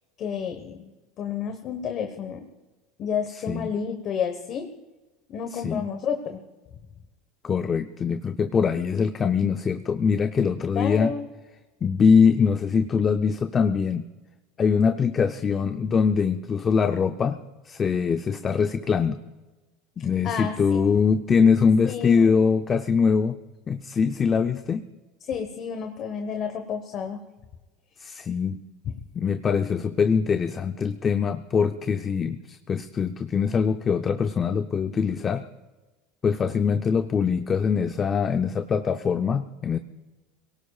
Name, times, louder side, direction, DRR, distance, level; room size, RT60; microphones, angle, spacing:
voice 1, 0.2-0.9 1.2-2.4 3.0-4.7 5.3-6.4 10.7-11.2 20.0-20.8 21.8-22.3 25.2-27.2, left 7 dB, 40° left, 6 dB, 1.2 m, -30 dB
voice 2, 5.5-5.8 7.4-11.1 11.8-14.0 14.6-17.4 17.7-19.2 20.0-23.4 23.7-24.9 28.0-28.6 29.2-35.4 36.2-39.8, left 6 dB, 25° left, 8 dB, 0.5 m, -23 dB
22.5 x 18.0 x 2.4 m, 1.2 s
supercardioid pair, 145°, 0 cm